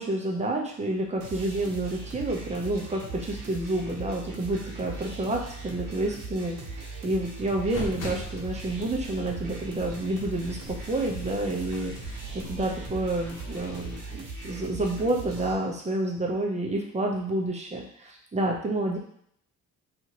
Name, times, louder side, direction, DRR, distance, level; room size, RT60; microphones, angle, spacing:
voice 1, 0.0-19.0, right 2 dB, 20° right, -1 dB, 0.7 m, -29 dB
sound 1, 1.2-15.5, right 3 dB, 80° right, 0.8 m, -39 dB
sound 2, 7.7-14.0, left 1 dB, 55° left, 0.9 m, -42 dB
2.8 x 2.5 x 2.9 m, 0.66 s
cardioid pair, 90°, 30 cm